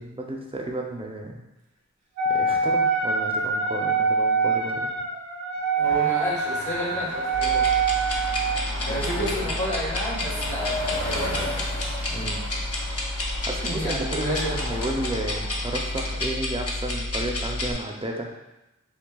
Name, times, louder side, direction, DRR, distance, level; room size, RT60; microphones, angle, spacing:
voice 1, 0.0-1.4 2.3-4.9 8.9-9.5 12.1-12.5 13.4-18.3, right 1 dB, 20° right, 1 dB, 0.6 m, -32 dB
Wind instrument woodwind instrument, 2.2-8.6, right 4 dB, 65° right, 0.8 m, -24 dB
voice 2, 5.8-7.6 8.9-11.5 13.6-14.5, equal, 90° left, -7 dB, 1.3 m, -31 dB
sound 1, 5.8-16.1, left 1 dB, 70° left, 1.4 m, -36 dB
sound 2, 7.3-17.7, left 2 dB, 55° left, 0.7 m, -30 dB
6.1 x 2.2 x 2.3 m, 0.96 s
wide cardioid pair, 80°, 29 cm